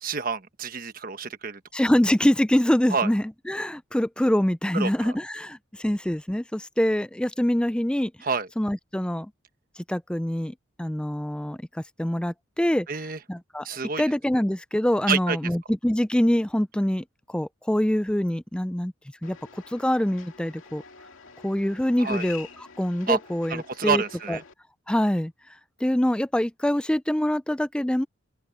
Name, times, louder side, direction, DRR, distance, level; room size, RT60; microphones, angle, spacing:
voice 1, 0.0-1.6 2.9-3.1 4.7-5.1 8.2-8.5 12.9-13.2 13.6-14.0 15.1-15.4 22.0-22.2 23.1-23.2 23.5-24.4, right 5 dB, 45° right, 1.3 m, -28 dB
voice 2, 1.7-8.1 8.6-9.3 9.9-12.9 13.3-13.7 14.0-18.9 19.2-19.4 19.7-20.8 21.4-24.0 24.3-24.4 24.9-25.3 25.8-28.1, left 1 dB, 5° left, 0.4 m, -25 dB
sound 1, 19.2-24.5, left 7 dB, 80° left, 2.2 m, -46 dB
open air
head